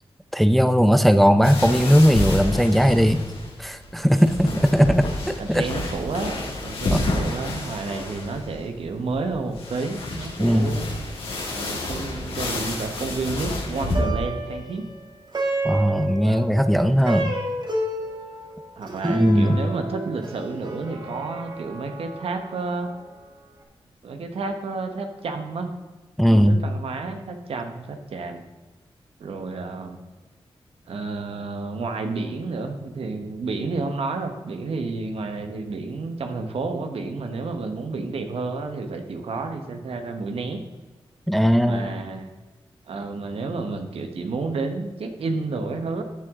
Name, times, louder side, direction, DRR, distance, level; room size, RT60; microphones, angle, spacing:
voice 1, 0.3-3.3 3.6-5.7 6.9-7.0 10.4-10.8 15.6-17.4 19.0-19.6 26.2-26.6 41.3-42.0, equal, ahead, 10 dB, 0.6 m, -18 dB
sound 1, 1.4-14.0, left 2 dB, 90° left, 2.4 m, -30 dB
voice 2, 5.4-10.9 11.5-14.8 16.2-16.5 18.7-22.9 24.0-25.7 26.3-28.4 29.2-30.0 30.9-40.6 41.7-42.3 42.9-46.0, right 3 dB, 85° right, 5 dB, 1.2 m, -30 dB
Plucked string instrument, 13.7-23.2, right 1 dB, 50° right, 1.9 m, -31 dB
12.5 x 7.9 x 3.7 m, 1.2 s
cardioid pair, 65°, 10 cm